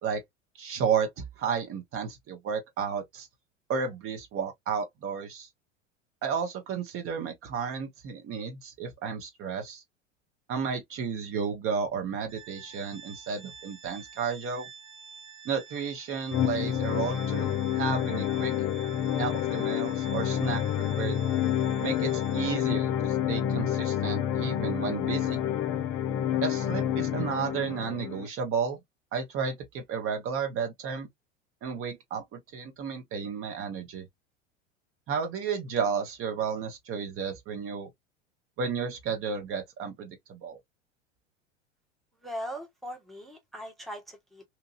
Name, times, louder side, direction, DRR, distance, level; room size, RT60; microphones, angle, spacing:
voice 1, 0.6-3.3 3.7-5.5 6.2-9.8 10.5-14.7 15.4-18.5 19.2-20.6 21.0-21.2 21.8-25.4 26.4-28.8 29.1-31.1 31.6-34.1 35.1-37.9 38.6-40.6, right 6 dB, 35° right, 1.0 m, -32 dB
Organ, 12.3-22.9, right 6 dB, 15° right, 1.4 m, -48 dB
sound 1, 16.3-28.3, left 10 dB, 40° left, 0.7 m, -28 dB
voice 2, 42.2-44.4, equal, ahead, 0.9 m, -39 dB
2.9 x 2.5 x 2.5 m
hypercardioid pair, 85°, 37 cm